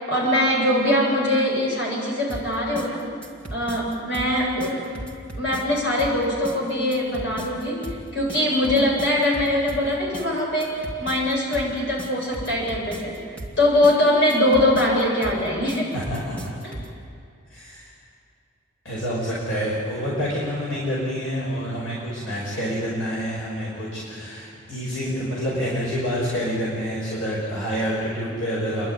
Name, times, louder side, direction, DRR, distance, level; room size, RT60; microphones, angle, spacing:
voice 1, 0.1-3.1 3.5-4.9 5.4-13.2 13.6-15.9 16.6-16.7, left 1 dB, 60° left, -4 dB, 7.8 m, -22 dB
sound 1, 2.3-17.0, right 1 dB, 5° left, 2.5 m, -37 dB
voice 2, 15.9-16.5 17.5-17.9 18.8-28.9, equal, 75° left, -6 dB, 5.5 m, -27 dB
29.5 x 11.5 x 9.6 m, 2.4 s
head